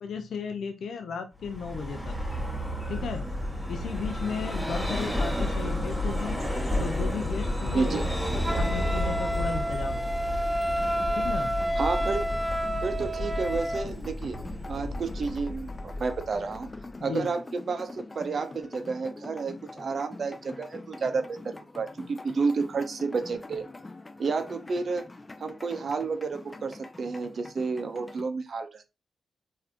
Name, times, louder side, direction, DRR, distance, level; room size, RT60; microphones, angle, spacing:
voice 1, 0.0-2.2 2.9-3.2 3.7-6.4 6.8-8.0 8.3-10.0 11.1-11.5 17.0-17.3, left 6 dB, 75° left, 7 dB, 0.5 m, -35 dB
Vehicle, 1.4-16.9, left 1 dB, ahead, 1.6 m, -31 dB
voice 2, 7.7-8.1 11.8-12.3 12.8-14.4 14.7-16.7 17.0-23.6 24.2-25.1 25.4-28.9, right 4 dB, 60° right, 9 dB, 0.6 m, -31 dB
Wind instrument woodwind instrument, 8.4-13.9, equal, 20° right, 0.5 m, -30 dB
sound 1, 10.8-28.2, left 2 dB, 30° left, 0.6 m, -44 dB
4.0 x 2.6 x 2.8 m, 0.26 s
supercardioid pair, 50°, 0 cm